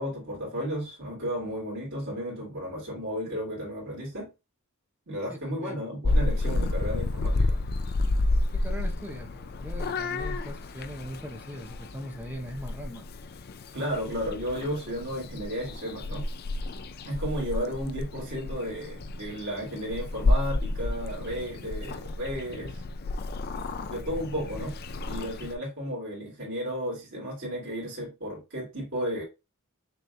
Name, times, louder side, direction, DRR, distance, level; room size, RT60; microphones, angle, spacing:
voice 1, 0.0-4.3 5.1-7.6 13.7-16.2 17.0-22.8 23.9-24.7 25.0-29.2, equal, 55° right, 2.9 m, -33 dB
voice 2, 5.3-5.8 8.5-13.1, equal, 10° right, 0.7 m, -40 dB
Purr / Meow, 6.0-25.5, left 2 dB, 45° left, 0.4 m, -31 dB
6.5 x 3.1 x 2.5 m
head